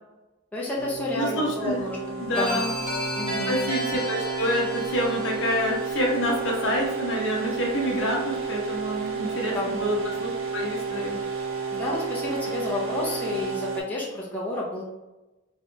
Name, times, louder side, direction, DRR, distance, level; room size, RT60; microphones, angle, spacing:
voice 1, 0.5-2.6 3.1-3.6 9.2-9.9 11.7-14.8, left 1 dB, 10° left, -5 dB, 0.6 m, -30 dB
sound 1, 0.8-13.8, right 4 dB, 85° right, 0.8 m, -32 dB
voice 2, 1.2-1.8 2.2-2.8 3.5-11.2, equal, 60° left, -2 dB, 0.9 m, -27 dB
sound 2, 2.3-7.1, equal, 25° right, 1.2 m, -34 dB
3.2 x 2.8 x 2.6 m, 1.0 s
head